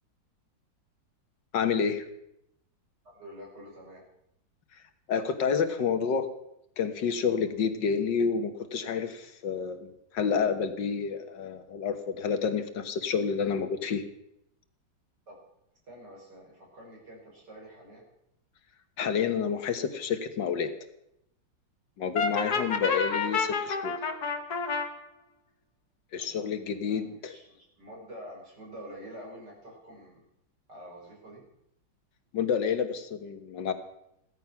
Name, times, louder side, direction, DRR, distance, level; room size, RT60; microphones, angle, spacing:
voice 1, 1.5-2.0 5.1-6.3 6.8-14.0 19.0-20.7 22.0-23.9 26.1-27.3 32.3-33.7, left 6 dB, 75° left, 9 dB, 1.9 m, -29 dB
voice 2, 3.0-4.0 15.3-15.4 15.9-18.1 22.5-22.7 26.2-26.4 26.7-30.2 30.7-31.4, equal, 65° right, -3 dB, 6.2 m, -47 dB
Brass instrument, 22.2-24.9, left 5 dB, 60° left, 1.9 m, -29 dB
16.0 x 13.5 x 5.9 m, 0.80 s
omnidirectional pair, 2.0 m